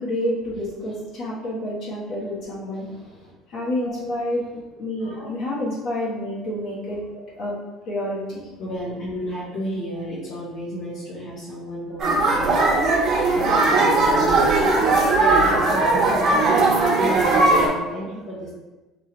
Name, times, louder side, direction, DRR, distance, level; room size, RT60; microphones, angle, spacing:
voice 1, 0.0-2.9 3.5-4.4 4.8-7.0 7.4-7.5 7.9-8.5, left 1 dB, 65° left, -8 dB, 1.3 m, -28 dB
voice 2, 2.8-3.3 3.8-4.1 4.5-4.6 5.0-5.3 7.1-7.2 8.6-18.5, equal, 85° left, -10 dB, 1.3 m, -33 dB
sound 1, 12.0-17.7, right 2 dB, 50° right, 1.0 m, -18 dB
3.3 x 3.3 x 3.1 m, 1.2 s
supercardioid pair, 95°, 0 cm